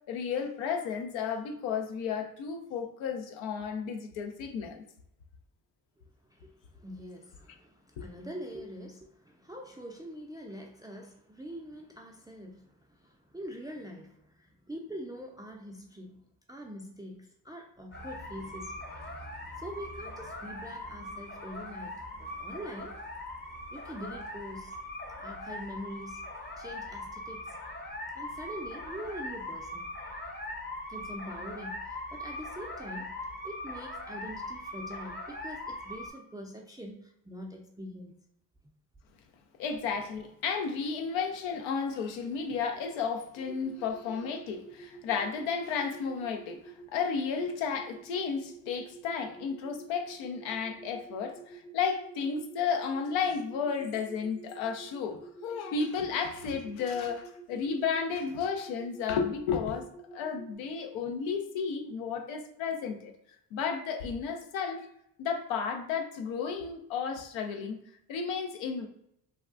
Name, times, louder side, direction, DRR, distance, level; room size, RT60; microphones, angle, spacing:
voice 1, 0.1-4.9 8.0-8.1 39.6-63.1 63.5-64.8 65.2-67.8 68.1-68.9, left 6 dB, 80° left, 0.6 m, -33 dB
voice 2, 6.3-16.2 16.5-18.7 19.6-21.9 22.2-22.9 23.7-24.7 25.2-26.2 26.6-27.6 28.2-29.9 30.9-33.1 33.4-38.1 42.9-43.0 43.5-43.6 44.1-44.2, equal, 10° right, 0.3 m, -44 dB
sound 1, 17.9-36.1, left 1 dB, 25° left, 0.6 m, -41 dB
sound 2, 43.4-60.5, right 4 dB, 60° left, 1.3 m, -49 dB
3.5 x 2.2 x 2.4 m
supercardioid pair, 55°, 45 cm